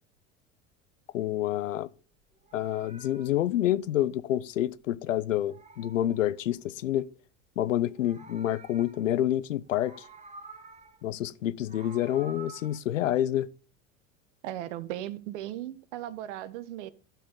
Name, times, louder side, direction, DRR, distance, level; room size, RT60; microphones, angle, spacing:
voice 1, 1.1-1.9 2.5-7.1 7.6-9.9 11.0-13.5, left 12 dB, 80° left, 0.6 m, -28 dB
Meow, 2.3-4.9 5.2-6.9 7.7-9.4 9.7-11.1 11.4-12.8, right 4 dB, 20° right, 1.2 m, -51 dB
voice 2, 14.4-16.9, right 13 dB, 65° right, 0.9 m, -37 dB
12.5 x 4.2 x 5.4 m
hypercardioid pair, 75°, 38 cm